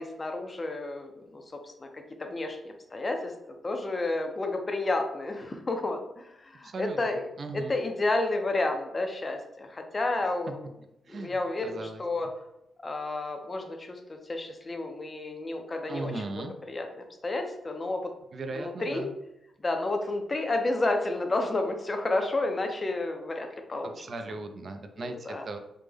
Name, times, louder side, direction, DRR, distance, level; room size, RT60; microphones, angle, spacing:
voice 1, 0.0-1.4 1.8-1.9 2.2-3.3 3.6-7.2 7.5-10.6 11.1-12.3 12.8-14.0 14.3-18.1 18.5-19.1 19.6-23.9 25.0-25.4, left 2 dB, 25° left, 4 dB, 0.4 m, -31 dB
voice 2, 6.6-7.7 11.1-12.0 15.9-16.5 18.3-19.1 23.8-25.6, right 2 dB, 45° right, 7 dB, 0.3 m, -38 dB
3.4 x 2.0 x 3.2 m, 0.85 s
wide cardioid pair, 130°, 0 cm